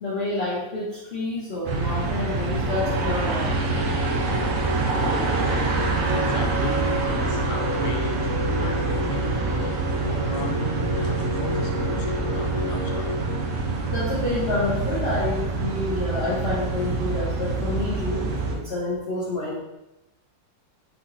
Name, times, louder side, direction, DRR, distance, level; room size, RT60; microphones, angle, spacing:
voice 1, 0.0-3.5 13.9-19.6, left 2 dB, 45° left, -7 dB, 0.9 m, -28 dB
sound 1, 1.7-18.6, right 3 dB, 65° right, 0.8 m, -26 dB
sound 2, 2.3-14.9, left 1 dB, 80° right, 1.7 m, -32 dB
voice 2, 6.1-13.1 17.9-18.1, left 3 dB, 70° left, 2 dB, 1.2 m, -36 dB
4.1 x 4.0 x 3.0 m, 0.94 s
omnidirectional pair, 2.0 m